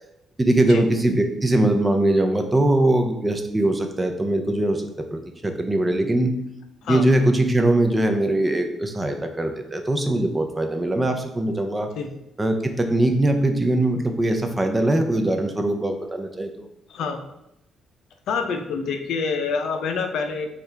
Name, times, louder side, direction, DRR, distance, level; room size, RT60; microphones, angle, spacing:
voice 1, 0.4-6.3 6.9-11.9 12.4-16.7, right 1 dB, 15° right, 5 dB, 0.6 m, -21 dB
voice 2, 16.9-17.2 18.3-20.5, left 5 dB, 75° left, 5 dB, 0.5 m, -26 dB
6.1 x 2.4 x 3.3 m, 0.85 s
cardioid pair, 100°, 0 cm